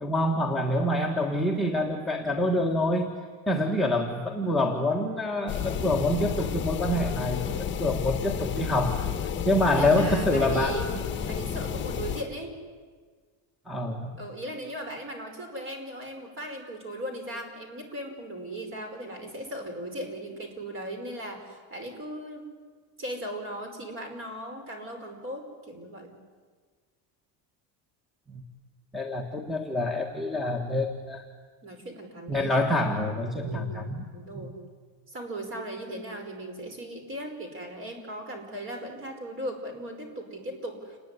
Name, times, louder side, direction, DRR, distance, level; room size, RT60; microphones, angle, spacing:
voice 1, 0.0-3.1 3.5-10.8 13.7-14.1 28.3-28.4 28.9-31.3 32.3-34.1 34.4-34.5, left 1 dB, ahead, 3 dB, 1.5 m, -26 dB
sound 1, 5.5-12.2, left 8 dB, 25° left, 1.7 m, -31 dB
voice 2, 9.7-10.9 11.3-12.5 14.2-22.4 23.0-26.2 31.6-32.6 33.4-34.6 35.1-41.0, right 1 dB, 30° right, 5 dB, 5.2 m, -37 dB
28.5 x 20.5 x 9.8 m, 1.5 s
cardioid pair, 170°, 42 cm